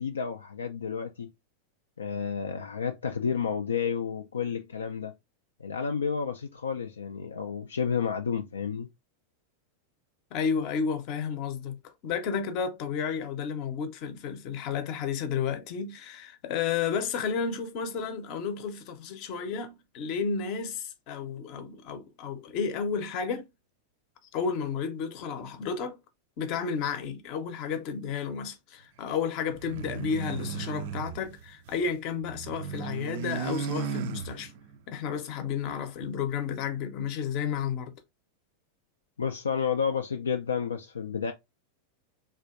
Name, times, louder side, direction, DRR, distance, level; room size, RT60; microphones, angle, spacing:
voice 1, 0.0-1.3 2.0-5.1 5.6-8.9 39.2-41.3, left 6 dB, 70° left, 0.3 m, -31 dB
voice 2, 10.3-23.5 24.3-26.0 26.4-34.5 34.9-37.9, left 6 dB, 40° left, 0.7 m, -32 dB
sound 1, 29.5-31.9 32.2-34.8, right 7 dB, 50° right, 0.3 m, -36 dB
3.3 x 2.5 x 2.4 m
figure-of-eight pair, 90°, 0 cm